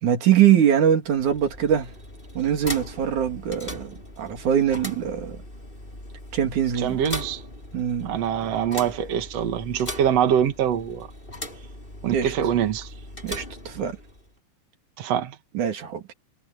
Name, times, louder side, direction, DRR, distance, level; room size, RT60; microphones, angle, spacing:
voice 1, 0.0-1.9 2.3-5.4 6.3-7.0 7.7-8.2 12.1-12.3 13.2-14.0 15.5-16.1, right 9 dB, 45° right, 3.2 m, -22 dB
sound 1, 1.0-14.3, left 1 dB, 10° left, 6.3 m, -39 dB
voice 2, 6.7-7.4 8.0-11.1 12.0-12.9 15.0-15.3, right 9 dB, 80° right, 1.4 m, -24 dB
omnidirectional pair, 5.7 m